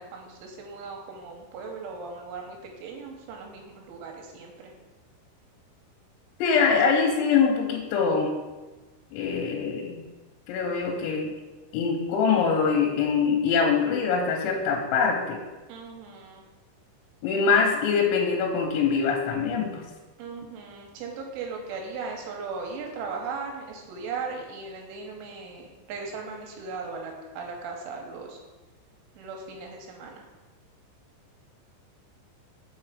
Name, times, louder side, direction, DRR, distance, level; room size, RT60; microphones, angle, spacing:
voice 1, 0.0-4.7 15.7-16.4 20.2-28.4 29.2-30.3, right 4 dB, 85° right, 1 dB, 3.3 m, -38 dB
voice 2, 6.4-8.3 9.1-10.0 10.5-11.3 11.7-15.4 17.2-19.8, left 5 dB, 85° left, 0 dB, 3.1 m, -23 dB
6.0 x 4.9 x 4.8 m, 1.2 s
omnidirectional pair, 5.5 m